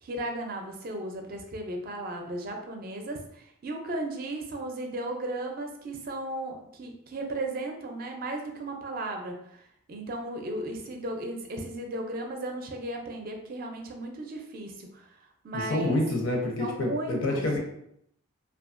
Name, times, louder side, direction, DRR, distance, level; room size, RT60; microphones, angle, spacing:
voice 1, 0.0-16.0 16.6-17.4, right 1 dB, 45° right, 3 dB, 0.4 m, -35 dB
voice 2, 15.5-17.6, left 1 dB, 85° left, 0 dB, 0.7 m, -27 dB
2.7 x 2.3 x 2.5 m, 0.72 s
head